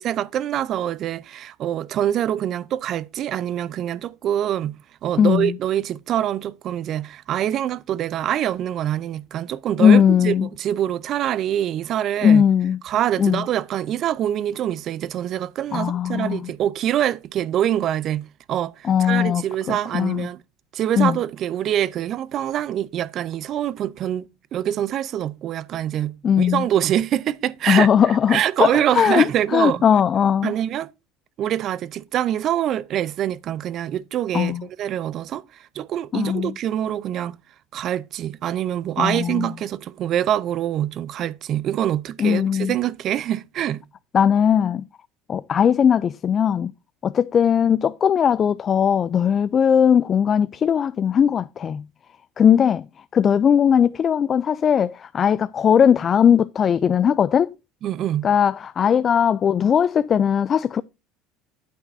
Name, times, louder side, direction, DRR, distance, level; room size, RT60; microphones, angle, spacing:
voice 1, 0.0-12.4 12.8-20.4 20.7-27.9 28.3-29.8 30.4-30.9 31.4-35.4 35.8-37.4 37.7-43.8 57.8-58.3, right 11 dB, 50° right, 0.5 m, -25 dB
voice 2, 5.2-5.6 9.8-10.5 12.2-12.8 13.2-13.4 15.7-16.5 18.8-20.3 21.0-21.2 26.2-26.6 27.7-30.5 34.3-34.6 36.1-36.5 39.0-39.5 42.2-42.7 44.1-44.8 45.3-46.7 47.0-51.8 52.4-52.9 53.1-57.5 58.2-60.8, left 8 dB, 35° left, 0.3 m, -19 dB
8.9 x 8.0 x 2.6 m
supercardioid pair, 100°, 0 cm